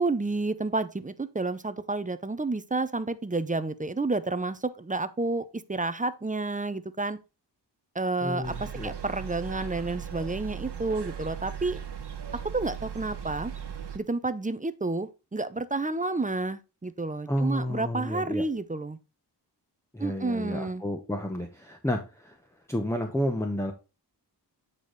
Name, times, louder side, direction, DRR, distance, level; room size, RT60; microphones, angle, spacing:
voice 1, 0.0-7.2 8.0-11.8 12.4-13.5 13.9-19.0 20.0-20.8, right 3 dB, 20° right, 0.6 m, -30 dB
voice 2, 8.2-8.9 17.3-18.4 19.9-22.4 22.7-23.7, equal, 5° left, 0.9 m, -31 dB
sound 1, 8.4-14.0, right 8 dB, 70° right, 1.3 m, -38 dB
8.5 x 4.9 x 3.9 m
wide cardioid pair, 110°, 42 cm